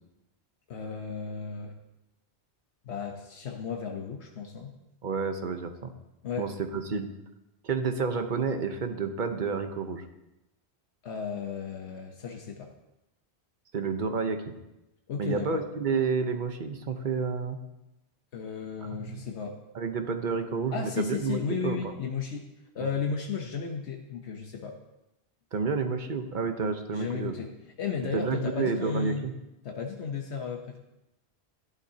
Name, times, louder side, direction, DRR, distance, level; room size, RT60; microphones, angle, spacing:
voice 1, 0.7-1.7 2.8-4.7 6.2-6.5 11.0-12.7 15.1-15.6 18.3-19.6 20.7-22.5 22.7-24.8 26.9-27.5 27.8-29.3 29.6-30.8, left 6 dB, 80° left, 2 dB, 1.2 m, -34 dB
voice 2, 5.0-5.9 6.4-7.1 7.6-10.0 13.7-14.5 15.2-17.6 18.9-19.2 19.7-21.8 22.8-22.9 25.5-27.3 28.1-29.3, right 5 dB, 50° right, 7 dB, 1.0 m, -30 dB
14.0 x 11.5 x 2.8 m, 0.92 s
omnidirectional pair, 1.1 m